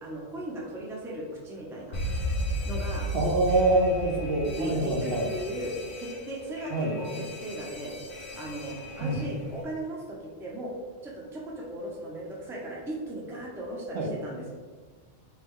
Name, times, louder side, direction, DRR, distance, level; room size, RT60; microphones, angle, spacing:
voice 1, 0.0-2.0 2.7-3.1 4.6-7.9 8.4-10.7 11.0-14.5, right 1 dB, 5° right, -3 dB, 0.5 m, -37 dB
Alarm, 1.9-9.6, equal, 60° left, 0.8 m, -35 dB
voice 2, 3.1-5.3 6.7-7.0 9.0-9.2 13.9-14.1, right 2 dB, 70° right, 0 dB, 0.9 m, -25 dB
4.4 x 2.9 x 3.6 m, 1.5 s
omnidirectional pair, 1.1 m